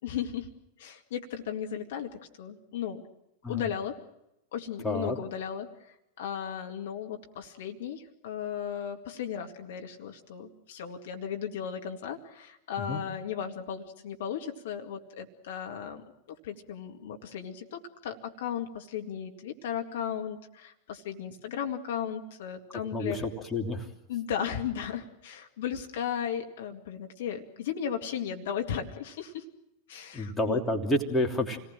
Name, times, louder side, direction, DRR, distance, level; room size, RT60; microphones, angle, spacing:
voice 1, 0.0-0.5 0.8-2.1 2.4-3.0 3.5-3.9 4.5-5.7 6.2-16.0 16.4-23.3 24.1-29.4 29.9-30.6, left 8 dB, 55° left, 4 dB, 2.2 m, -35 dB
voice 2, 4.8-5.2 12.9-13.0 22.9-23.9 30.1-31.6, left 1 dB, 5° left, 1 dB, 3.0 m, -29 dB
28.5 x 19.0 x 7.6 m, 0.87 s
figure-of-eight pair, 90°, 0 cm